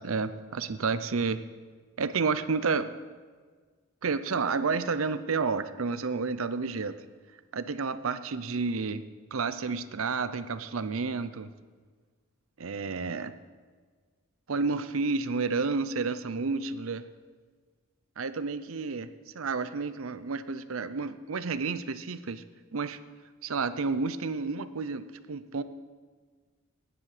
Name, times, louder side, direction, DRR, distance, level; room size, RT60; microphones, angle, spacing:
voice 1, 0.0-1.4 2.0-2.9 4.0-7.0 7.5-9.0 9.3-11.5 12.6-13.3 14.5-17.1 18.2-19.1 19.3-22.4 22.7-23.0 23.4-25.6, right 4 dB, 75° right, 13 dB, 0.7 m, -30 dB
16.5 x 10.0 x 5.0 m, 1.5 s
head